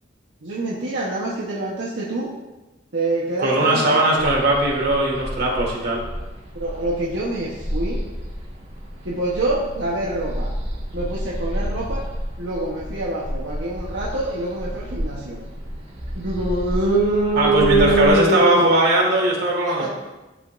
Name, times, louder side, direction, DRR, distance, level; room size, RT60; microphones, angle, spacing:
voice 1, 0.4-2.3 2.9-4.5 6.5-8.0 9.0-10.5 10.9-12.0 12.4-15.4 16.1-18.7 19.6-19.9, right 2 dB, 70° right, -5 dB, 1.1 m, -24 dB
voice 2, 3.4-6.0 17.4-19.9, right 1 dB, 55° right, -3 dB, 2.0 m, -19 dB
sound 1, 4.2-18.1, equal, 35° right, 1.8 m, -31 dB
12.0 x 5.2 x 2.6 m, 1.1 s
head